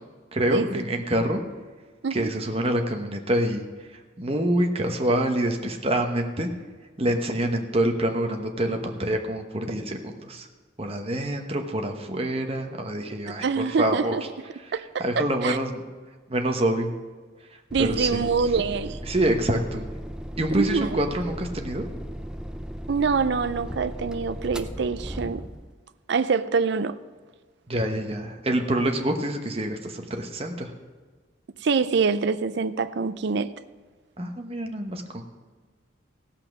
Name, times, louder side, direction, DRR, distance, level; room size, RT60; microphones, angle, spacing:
voice 1, 0.3-1.4 2.1-3.7 3.9-6.5 7.0-10.5 10.8-14.2 15.0-15.8 16.3-16.9 17.8-18.2 19.1-19.9 20.4-21.8 27.7-30.7 34.2-35.2, right 1 dB, 30° right, 4 dB, 1.1 m, -26 dB
voice 2, 13.4-14.2 14.7-15.6 17.7-19.0 20.5-21.0 22.9-25.5 26.1-27.0 31.6-33.5, right 5 dB, 60° right, 13 dB, 0.5 m, -25 dB
sound 1, 17.7-25.7, equal, 5° right, 0.4 m, -36 dB
17.0 x 5.8 x 6.0 m, 1.5 s
head